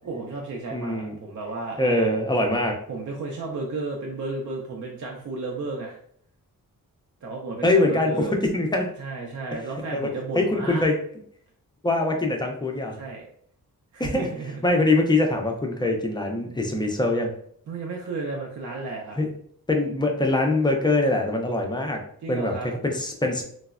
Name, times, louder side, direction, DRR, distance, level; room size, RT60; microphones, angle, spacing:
voice 1, 0.0-2.1 2.9-6.0 7.2-8.4 9.0-10.8 12.9-13.3 13.9-14.6 17.7-19.2 22.2-22.7, right 3 dB, 55° right, -1 dB, 0.5 m, -33 dB
voice 2, 0.7-1.2 1.8-2.8 7.6-8.9 9.9-10.9 11.8-13.0 14.0-14.3 14.6-17.3 19.2-19.3 19.7-22.0 22.3-23.4, left 2 dB, 15° left, 2 dB, 0.4 m, -23 dB
3.1 x 2.0 x 2.4 m, 0.63 s
wide cardioid pair, 110°, 36 cm